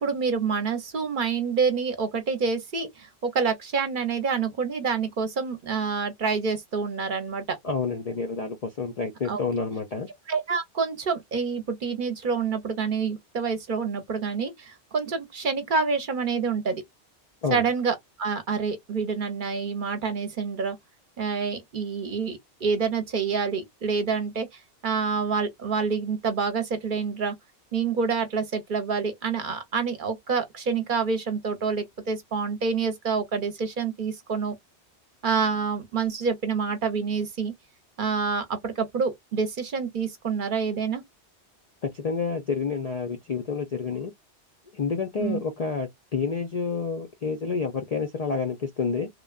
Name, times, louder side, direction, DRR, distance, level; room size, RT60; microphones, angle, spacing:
voice 1, 0.0-7.6 9.2-9.4 10.3-16.8 17.5-20.8 21.2-27.3 27.7-34.5 35.2-37.5 38.0-41.0 45.2-45.4, right 5 dB, 50° right, 0.8 m, -27 dB
voice 2, 7.6-10.1 17.4-17.6 41.8-44.1 44.7-49.1, left 5 dB, 55° left, 0.4 m, -29 dB
3.2 x 2.2 x 2.3 m
omnidirectional pair, 1.2 m